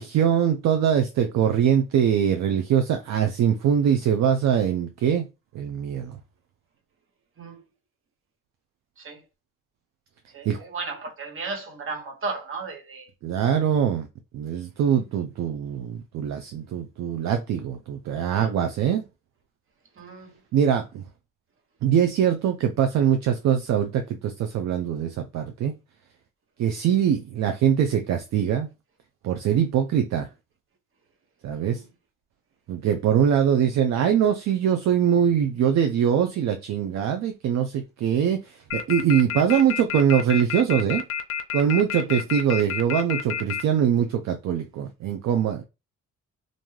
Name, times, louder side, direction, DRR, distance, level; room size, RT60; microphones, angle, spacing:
voice 1, 0.0-5.3 5.5-6.2 10.5-10.6 13.2-14.1 14.3-19.0 20.5-21.0 21.8-25.8 26.6-28.7 29.2-30.3 31.4-31.8 32.7-41.0 41.5-45.6, right 8 dB, 65° right, 0.5 m, -23 dB
voice 2, 10.3-13.1 19.9-20.3 31.6-31.9 42.0-42.1, right 4 dB, 45° right, 1.0 m, -35 dB
sound 1, 38.7-43.6, left 9 dB, 50° left, 0.5 m, -28 dB
2.6 x 2.2 x 3.1 m
cardioid pair, 90°, 30 cm